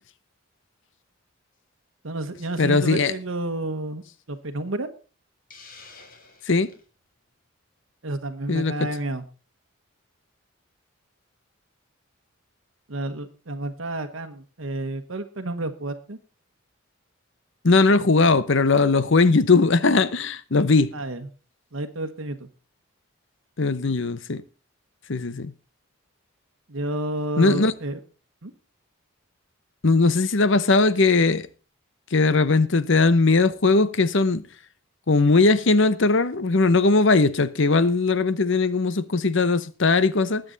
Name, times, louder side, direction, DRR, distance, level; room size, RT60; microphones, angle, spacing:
voice 1, 2.0-4.0 4.3-4.9 8.0-9.2 12.9-16.2 20.9-21.3 21.7-22.4 26.7-28.0 28.4-28.5, right 2 dB, 65° right, 1.2 m, -30 dB
voice 2, 2.6-3.1 6.5-6.7 8.5-8.9 17.6-20.9 23.6-24.4 25.1-25.5 27.4-27.7 29.8-31.5 32.1-34.4 35.1-40.4, left 3 dB, 60° left, 0.9 m, -19 dB
Hiss, 5.5-6.8, left 4 dB, 40° left, 2.5 m, -48 dB
20.5 x 7.8 x 4.0 m
head